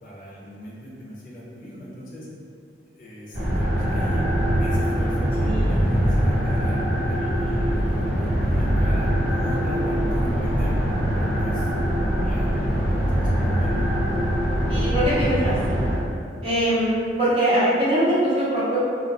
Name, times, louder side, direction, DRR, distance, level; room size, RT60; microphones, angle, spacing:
voice 1, 0.0-2.3 3.0-4.2 4.6-11.7 12.2-14.0, equal, 50° left, -5 dB, 0.5 m, -38 dB
sound 1, 3.3-16.0, equal, 60° right, 0.9 m, -22 dB
voice 2, 14.7-15.8 16.4-16.9 17.2-18.8, right 1 dB, 30° right, -9 dB, 0.7 m, -22 dB
2.3 x 2.1 x 2.5 m, 2.3 s
head